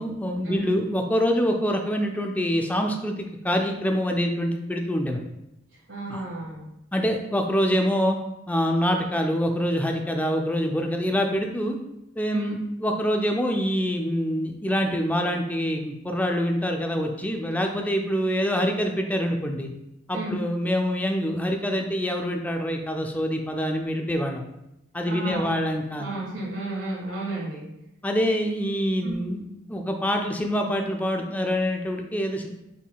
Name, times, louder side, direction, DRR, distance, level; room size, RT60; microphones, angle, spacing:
voice 1, 0.0-5.2 6.1-6.2 6.9-8.2 8.5-11.8 12.2-19.7 20.1-24.4 24.9-26.1 28.0-29.4 29.7-32.5, equal, 10° left, 3 dB, 0.4 m, -25 dB
voice 2, 5.9-6.7 12.3-12.5 20.1-20.4 25.0-25.7 26.0-27.7 29.0-29.1, right 2 dB, 85° right, -4 dB, 1.5 m, -32 dB
6.1 x 3.7 x 2.3 m, 0.88 s
head